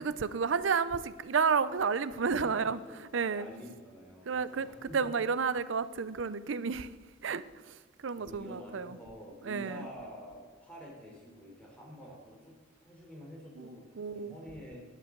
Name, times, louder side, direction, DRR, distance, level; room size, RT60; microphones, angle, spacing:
voice 1, 0.0-2.8 3.1-3.4 4.3-4.7 4.9-6.9 7.2-7.8 8.0-9.0 9.4-9.9 13.6-14.3, right 5 dB, 70° right, 0.5 m, -31 dB
voice 2, 2.3-5.1 8.2-12.5 12.8-14.8, equal, 5° left, 3.4 m, -48 dB
12.0 x 11.0 x 3.8 m
head